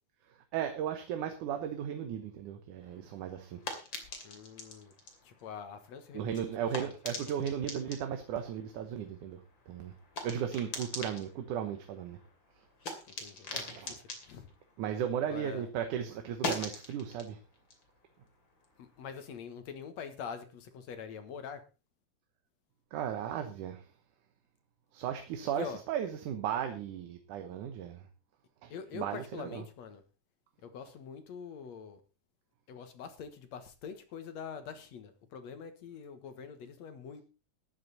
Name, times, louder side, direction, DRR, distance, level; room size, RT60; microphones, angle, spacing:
voice 1, 0.5-3.6 6.1-9.9 10.2-12.2 13.5-14.0 14.8-17.4 22.9-23.9 24.9-28.1 28.6-29.6, right 9 dB, 75° right, 7 dB, 2.6 m, -36 dB
sound 1, 2.8-15.6 15.9-19.1, left 2 dB, 40° left, 3.2 m, -44 dB
voice 2, 4.2-4.9 5.2-6.4 6.8-6.9 13.2-14.0 14.3-14.5 15.3-15.7 18.8-21.6 25.6-25.8 28.7-30.0 30.6-32.0 32.7-37.2, left 7 dB, 65° left, 9 dB, 2.5 m, -44 dB
14.0 x 11.0 x 4.1 m, 0.32 s
omnidirectional pair, 3.6 m